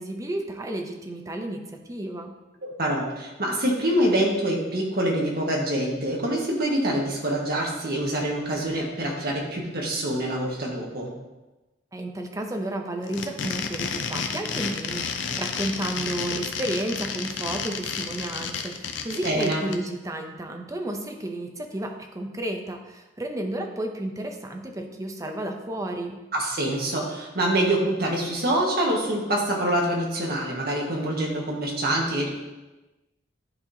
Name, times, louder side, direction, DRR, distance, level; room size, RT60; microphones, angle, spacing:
voice 1, 0.0-2.3 11.9-26.2, right 1 dB, 20° right, 4 dB, 0.6 m, -32 dB
voice 2, 2.6-11.1 19.2-19.7 26.3-32.3, right 1 dB, 55° right, -1 dB, 1.4 m, -25 dB
sound 1, 13.0-19.7, left 6 dB, 80° left, 0.6 m, -31 dB
10.5 x 4.4 x 2.7 m, 1.1 s
head